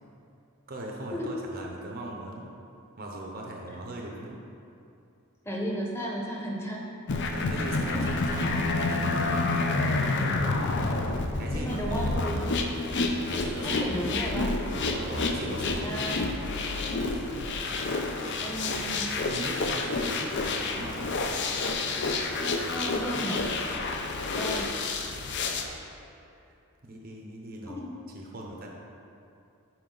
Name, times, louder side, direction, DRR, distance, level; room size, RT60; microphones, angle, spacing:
voice 1, 0.7-2.5 3.0-4.4 7.2-9.8 11.4-12.5 13.3-14.0 14.8-16.1 18.3-18.5 18.8-21.4 23.9-24.0 26.4-26.6 26.8-27.8 28.1-28.7, right 1 dB, 40° right, -1 dB, 0.7 m, -40 dB
voice 2, 5.4-6.9 11.5-12.4 13.6-14.5 15.5-16.2 18.4-19.0 22.7-23.4 24.4-24.7 27.7-27.8, equal, 10° left, -2 dB, 0.9 m, -34 dB
sound 1, 7.1-25.6, left 3 dB, 50° left, 0.6 m, -29 dB
10.5 x 4.7 x 3.9 m, 2.6 s
head